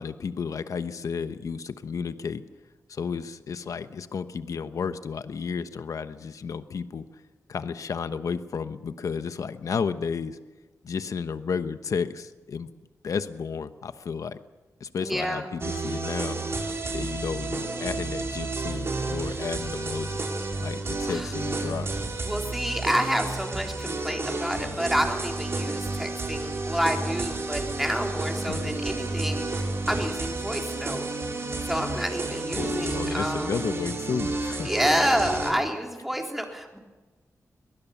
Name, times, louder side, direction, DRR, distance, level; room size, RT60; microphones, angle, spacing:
voice 1, 0.0-2.4 2.9-7.0 7.5-10.4 10.8-12.7 13.0-14.4 14.8-16.4 16.9-20.2 20.6-21.9 28.5-28.8 32.5-34.7, left 6 dB, 70° left, 11 dB, 1.1 m, -32 dB
voice 2, 15.0-15.5 20.9-21.3 22.2-31.1 31.7-33.6 34.6-36.8, equal, 5° right, 2 dB, 3.8 m, -29 dB
sound 1, 15.6-35.5, right 3 dB, 50° right, 4.5 m, -31 dB
23.0 x 19.5 x 7.2 m, 1.2 s
wide cardioid pair, 100°, 6 cm